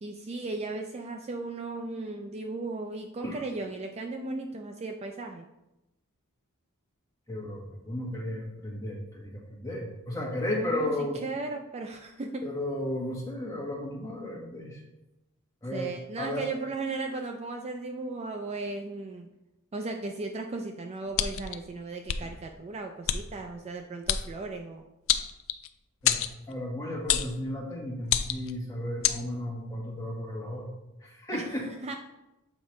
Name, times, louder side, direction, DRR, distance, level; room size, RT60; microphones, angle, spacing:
voice 1, 0.0-5.5 10.5-12.4 15.7-19.3 19.7-24.9 31.3-31.9, right 3 dB, 30° right, 4 dB, 0.3 m, -36 dB
voice 2, 7.3-11.2 12.4-14.8 15.6-16.4 26.0-26.2 26.5-30.7 31.0-31.6, left 1 dB, 15° left, -3 dB, 1.3 m, -34 dB
sound 1, 21.1-21.5 22.1-22.2 23.1-23.2 24.1-24.2 25.1-25.7 26.0-26.3 27.1-27.3 28.0-28.5 29.0-29.2, left 10 dB, 65° left, 0.4 m, -26 dB
7.1 x 4.9 x 3.1 m, 0.94 s
head